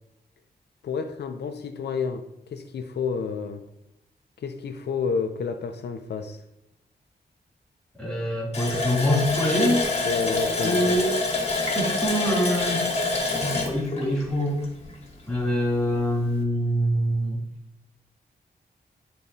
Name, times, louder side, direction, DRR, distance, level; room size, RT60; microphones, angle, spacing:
voice 1, 0.8-2.2 2.5-3.6 4.4-6.4 10.0-10.8, left 5 dB, 80° left, 6 dB, 0.6 m, -30 dB
voice 2, 8.0-9.8 10.6-11.1 11.7-12.8 13.4-14.6 15.3-17.4, equal, 5° left, -6 dB, 2.6 m, -24 dB
Water tap faucet, 8.5-15.0 15.4-15.5 15.9-16.1, left 3 dB, 35° left, 1.2 m, -26 dB
10.5 x 4.1 x 2.7 m, 0.84 s
wide cardioid pair, 170°, 17 cm